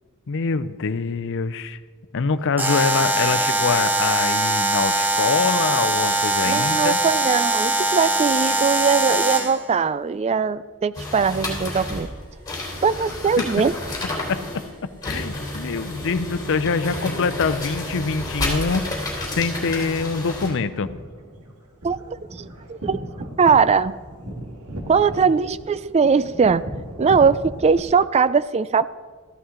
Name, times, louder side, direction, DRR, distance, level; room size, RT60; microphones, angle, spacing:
voice 1, 0.3-1.8 2.1-7.0 14.3-14.4 15.0-18.9 19.4-20.9, left 5 dB, 60° left, 13 dB, 0.6 m, -24 dB
Alarm, 2.6-9.6, right 2 dB, 10° right, 0.8 m, -21 dB
voice 2, 6.4-12.1 12.8-13.7 21.8-23.0 23.4-24.0 24.9-26.6 27.0-28.9, right 5 dB, 30° right, 16 dB, 0.3 m, -20 dB
sound 1, 10.9-20.5, left 1 dB, 20° left, 3.2 m, -30 dB
sound 2, 20.7-27.8, equal, 90° right, 1.9 m, -36 dB
14.0 x 11.5 x 3.8 m, 1.5 s
head